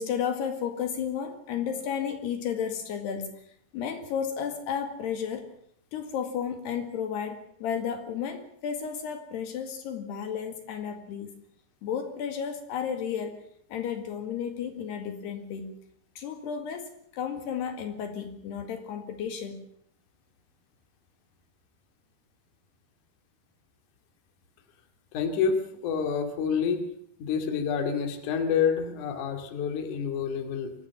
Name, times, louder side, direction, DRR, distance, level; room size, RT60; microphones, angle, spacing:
voice 1, 0.0-3.3 3.7-5.5 5.9-11.4 11.8-13.4 13.7-15.8 16.2-19.7, left 7 dB, 70° left, 6 dB, 4.0 m, -33 dB
voice 2, 25.1-26.8 27.2-30.7, left 6 dB, 50° left, 6 dB, 3.3 m, -28 dB
24.5 x 17.5 x 7.1 m, 0.68 s
omnidirectional pair, 5.1 m